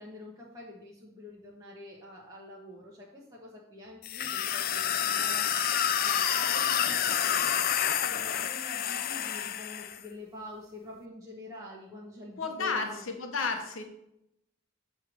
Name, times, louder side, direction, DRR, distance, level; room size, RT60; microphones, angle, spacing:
voice 1, 0.0-5.5 6.0-7.2 7.6-13.0, left 1 dB, 20° right, -5 dB, 1.1 m, -46 dB
sound 1, 4.0-10.0, left 9 dB, 45° left, 0.4 m, -28 dB
Vehicle horn car horn honking, 5.1-5.9, right 7 dB, 60° right, 1.3 m, -48 dB
voice 2, 12.4-13.8, left 4 dB, 85° left, 4 dB, 0.9 m, -32 dB
7.5 x 3.3 x 6.2 m, 0.82 s
head